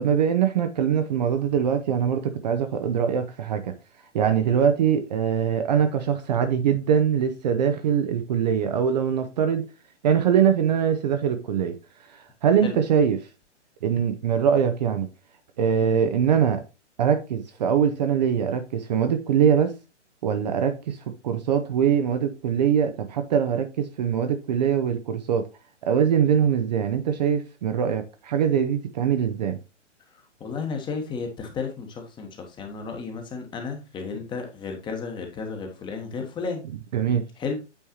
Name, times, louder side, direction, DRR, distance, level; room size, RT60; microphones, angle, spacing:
voice 1, 0.0-3.7 4.1-9.7 10.0-11.8 12.1-13.2 13.8-15.1 15.6-16.6 17.0-19.7 20.2-25.5 25.8-29.6 36.9-37.2, right 8 dB, 35° right, 0.7 m, -23 dB
voice 2, 30.1-36.6 37.4-37.6, left 5 dB, 15° left, 1.1 m, -33 dB
8.7 x 4.5 x 2.9 m
figure-of-eight pair, 125°, 36 cm